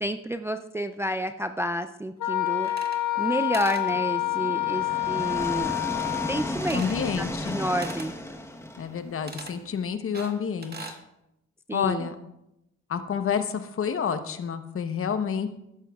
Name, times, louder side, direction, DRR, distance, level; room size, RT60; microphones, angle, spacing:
voice 1, 0.0-2.7 3.1-5.8 6.3-6.8 7.2-8.1 11.7-12.1, right 1 dB, 10° right, 9 dB, 0.4 m, -30 dB
Wind instrument woodwind instrument, 2.2-6.6, left 17 dB, 75° left, 1.1 m, -28 dB
sound 1, 2.6-3.3 3.5-3.9 6.6-7.1 7.8-8.1 9.3-9.6 10.1-11.0, right 4 dB, 30° right, 1.3 m, -41 dB
sound 2, 3.9-9.8, left 1 dB, 10° left, 1.0 m, -34 dB
voice 2, 6.7-7.6 8.8-11.0 11.7-12.1 12.9-15.5, left 7 dB, 45° left, 9 dB, 0.9 m, -29 dB
14.0 x 11.0 x 2.3 m, 0.86 s
cardioid pair, 90°, 30 cm